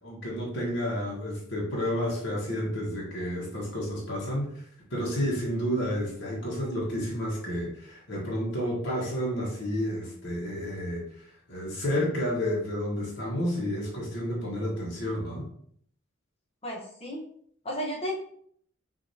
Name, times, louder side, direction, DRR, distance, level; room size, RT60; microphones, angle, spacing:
voice 1, 0.0-4.6 4.9-15.4, equal, 60° left, -5 dB, 1.3 m, -31 dB
voice 2, 16.6-17.2 17.6-18.1, equal, 30° left, -3 dB, 1.2 m, -33 dB
6.3 x 2.8 x 2.8 m, 0.64 s
head